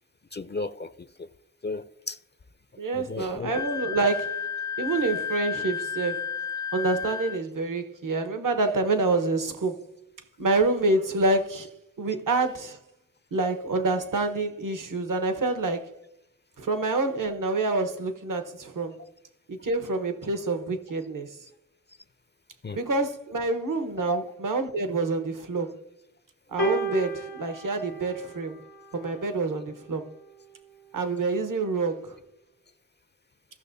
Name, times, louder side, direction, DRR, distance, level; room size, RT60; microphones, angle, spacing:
voice 1, 0.3-1.3 1.6-2.2 2.9-3.7 22.6-22.8 24.0-24.3, left 2 dB, 30° left, 0.5 m, -34 dB
voice 2, 2.8-4.5 4.8-6.3 6.7-9.9 10.4-12.8 13.3-15.9 16.6-19.0 19.5-21.5 22.7-25.8 26.5-28.6 28.9-30.2 30.9-32.2, right 3 dB, 65° right, 1.1 m, -27 dB
Wind instrument woodwind instrument, 3.5-7.4, left 7 dB, 30° right, 0.6 m, -32 dB
sound 1, 26.6-29.1 30.1-30.2, right 3 dB, 90° left, 1.4 m, -32 dB
17.0 x 6.2 x 2.7 m
cardioid pair, 50°, 34 cm